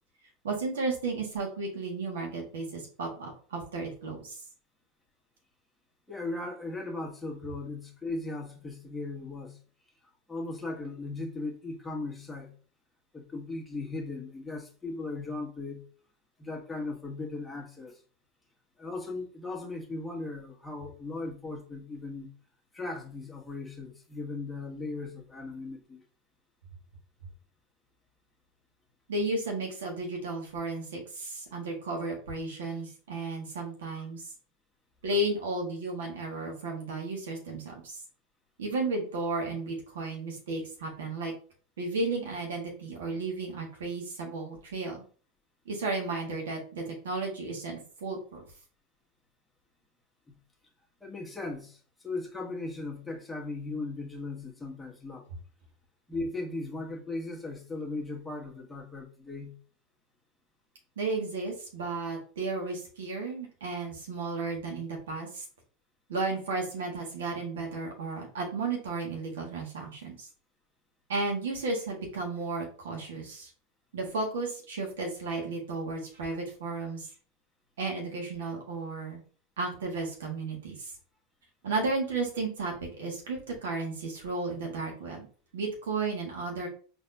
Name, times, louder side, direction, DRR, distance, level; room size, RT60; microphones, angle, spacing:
voice 1, 0.4-4.4 29.1-34.2 35.0-38.0 38.6-41.3 41.8-45.0 45.6-48.4 61.0-65.4 66.1-70.3 71.1-73.5 73.9-77.1 77.8-79.2 79.6-80.9 81.6-85.3 85.5-86.7, right 3 dB, 85° right, 0 dB, 1.5 m, -33 dB
voice 2, 6.1-9.6 10.3-12.5 13.1-15.8 16.4-18.0 18.8-22.3 22.7-26.0 50.3-50.4 51.0-55.2 56.1-59.6, left 3 dB, 10° left, -1 dB, 1.3 m, -37 dB
4.0 x 3.4 x 2.8 m, 0.41 s
hypercardioid pair, 100°, 0 cm